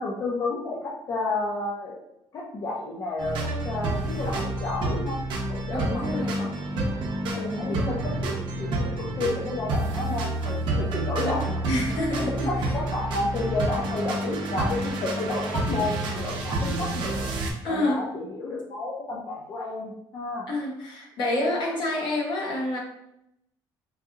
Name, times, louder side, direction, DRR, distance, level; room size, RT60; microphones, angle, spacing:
voice 1, 0.0-2.0 2.3-3.3 3.6-5.2 5.5-6.7 7.3-11.6 12.3-17.3 17.7-20.5, left 2 dB, 35° left, -3 dB, 0.5 m, -31 dB
sound 1, 3.2-17.5, right 2 dB, 60° right, 0.7 m, -29 dB
voice 2, 5.7-6.3 7.3-8.0 11.6-12.7 17.6-18.0 20.5-22.8, left 1 dB, 55° left, -1 dB, 0.8 m, -28 dB
4.1 x 2.6 x 2.4 m, 0.81 s
cardioid pair, 180°, 9 cm